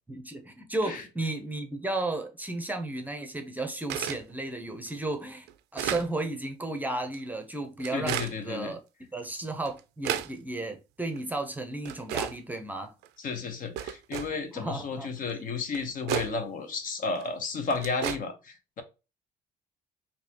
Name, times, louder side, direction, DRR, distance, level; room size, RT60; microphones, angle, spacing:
voice 1, 0.1-5.5 5.7-8.8 9.1-12.9 14.5-15.1, right 2 dB, 10° right, 0.6 m, -34 dB
sound 1, 3.9-4.2 4.9-5.0 5.5-6.1 7.0-7.2 7.8-8.4 9.2-9.3 9.7-10.3 11.1-11.2 11.9-12.4 13.0-13.1 13.8-14.3 15.3-15.4 15.7-16.3 17.2-17.3 17.7-18.2, right 11 dB, 85° right, 0.4 m, -32 dB
voice 2, 7.9-8.7 13.2-18.8, left 4 dB, 55° left, 0.9 m, -33 dB
4.0 x 2.7 x 2.8 m
cardioid pair, 110°, 17 cm